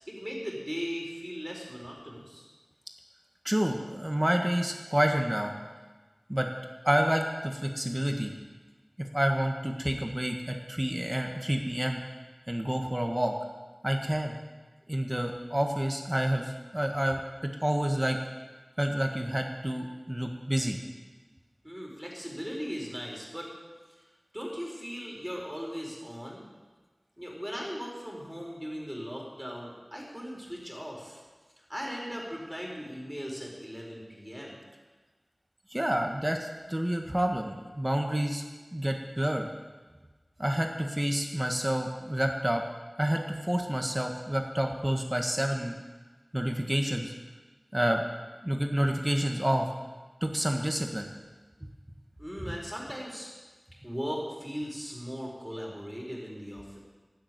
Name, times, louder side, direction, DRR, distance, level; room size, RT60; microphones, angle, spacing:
voice 1, 0.1-2.5 21.6-23.5 24.3-26.4 27.2-31.2 31.7-34.6 52.2-53.3 53.8-56.8, equal, 5° right, -2 dB, 4.8 m, -38 dB
voice 2, 3.4-5.5 6.3-6.5 6.8-8.3 9.0-12.0 12.5-13.3 13.8-14.4 14.9-17.3 17.6-18.2 18.8-20.8 35.7-38.4 38.7-39.5 40.4-42.6 43.0-45.7 46.3-47.1 47.7-48.0 48.4-49.7 50.2-51.1 52.4-52.5, right 1 dB, 20° right, 3 dB, 1.6 m, -29 dB
12.0 x 9.5 x 9.4 m, 1.3 s
wide cardioid pair, 40°, 0 cm